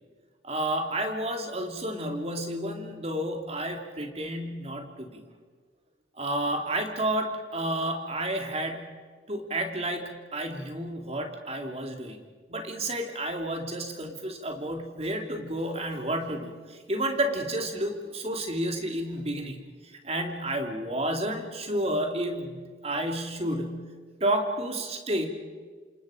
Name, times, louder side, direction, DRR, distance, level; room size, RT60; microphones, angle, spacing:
voice 1, 0.4-5.2 6.2-8.9 9.3-12.2 12.5-19.6 20.0-22.6 22.8-23.9 24.2-25.3, right 1 dB, 35° right, 3 dB, 2.8 m, -31 dB
28.0 x 27.5 x 5.2 m, 1.5 s
head